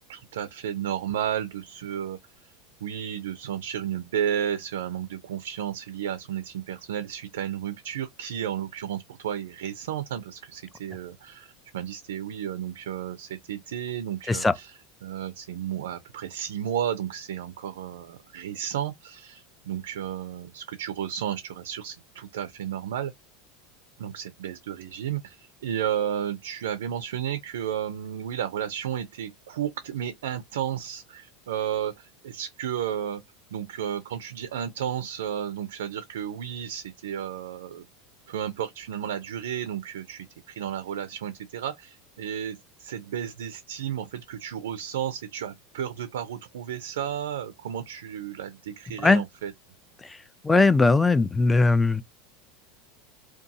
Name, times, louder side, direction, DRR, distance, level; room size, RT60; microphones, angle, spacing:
voice 1, 0.1-2.2 2.8-14.7 15.0-23.1 24.0-33.2 33.5-37.9 38.3-49.5, right 9 dB, 85° right, 0.4 m, -33 dB
voice 2, 50.4-52.0, left 3 dB, 10° left, 0.3 m, -19 dB
2.6 x 2.2 x 2.6 m
hypercardioid pair, 100°, 0 cm